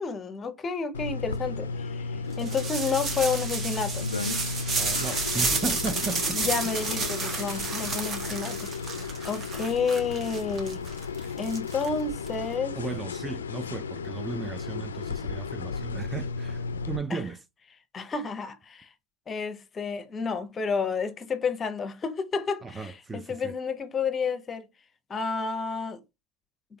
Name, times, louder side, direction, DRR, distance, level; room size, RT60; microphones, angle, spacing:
voice 1, 0.0-4.0 6.3-8.7 9.2-10.8 11.4-12.8 17.1-17.2 17.9-18.9 19.3-24.7 25.1-26.0, left 5 dB, 30° left, 0.7 m, -30 dB
sound 1, 0.9-17.0, left 4 dB, 85° left, 0.3 m, -34 dB
sound 2, 2.4-12.3, right 4 dB, 35° right, 1.1 m, -31 dB
voice 2, 4.8-6.4 12.8-17.4 22.6-23.5, right 4 dB, 15° right, 0.4 m, -35 dB
3.8 x 3.8 x 2.4 m
hypercardioid pair, 85°, 0 cm